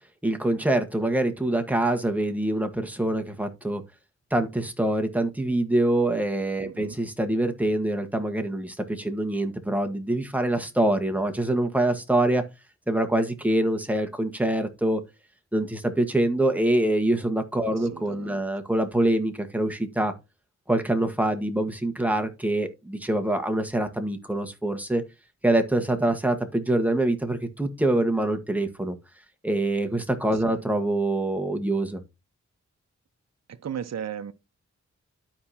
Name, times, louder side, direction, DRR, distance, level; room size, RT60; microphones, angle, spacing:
voice 1, 0.2-3.8 4.3-12.4 12.9-15.0 15.5-20.1 20.7-25.0 25.4-29.0 29.4-32.0, right 1 dB, 5° right, 1.5 m, -25 dB
voice 2, 6.6-7.0 17.6-18.4 25.9-26.1 30.3-30.5 33.5-34.3, right 8 dB, 60° right, 0.7 m, -37 dB
12.5 x 4.8 x 2.9 m
cardioid pair, 65°, 29 cm